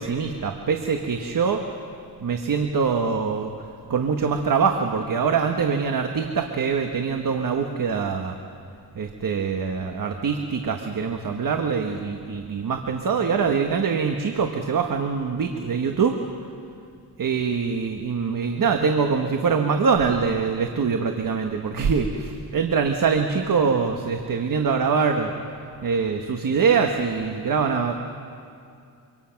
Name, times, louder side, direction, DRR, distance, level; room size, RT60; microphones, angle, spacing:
voice 1, 0.0-1.6 2.2-8.4 8.9-16.2 17.2-25.3 25.8-27.9, right 5 dB, 50° right, 4 dB, 1.4 m, -24 dB
26.0 x 25.0 x 5.9 m, 2.4 s
wide cardioid pair, 115°, 41 cm